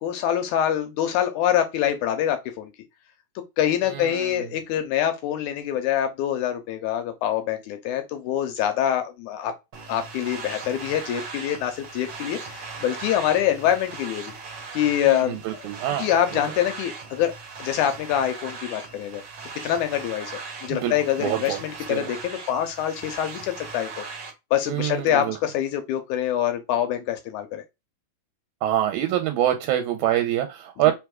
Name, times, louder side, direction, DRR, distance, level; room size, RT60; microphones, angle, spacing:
voice 1, 0.0-2.7 3.6-9.5 9.9-14.3 14.7-15.4 16.0-17.3 17.6-19.2 19.6-24.0 24.5-27.6, left 10 dB, 80° left, 1.8 m, -25 dB
voice 2, 3.8-4.5 15.1-16.4 20.7-22.1 24.7-25.4 28.6-30.9, right 12 dB, 80° right, 1.9 m, -26 dB
sound 1, 9.7-24.3, right 4 dB, 65° right, 1.1 m, -39 dB
4.7 x 3.5 x 2.2 m
omnidirectional pair, 3.8 m